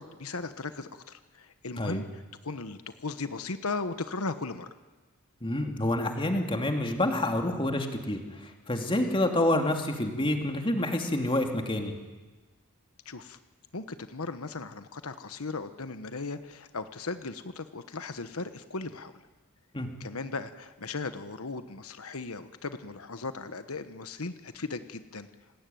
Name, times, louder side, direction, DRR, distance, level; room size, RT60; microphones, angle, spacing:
voice 1, 0.0-4.7 9.2-9.3 13.0-13.4 13.7-19.1 20.0-25.3, left 3 dB, 90° left, 10 dB, 1.2 m, -37 dB
voice 2, 5.4-11.9 19.7-19.9, left 1 dB, 25° left, 4 dB, 2.8 m, -28 dB
27.5 x 19.5 x 9.4 m, 1.3 s
head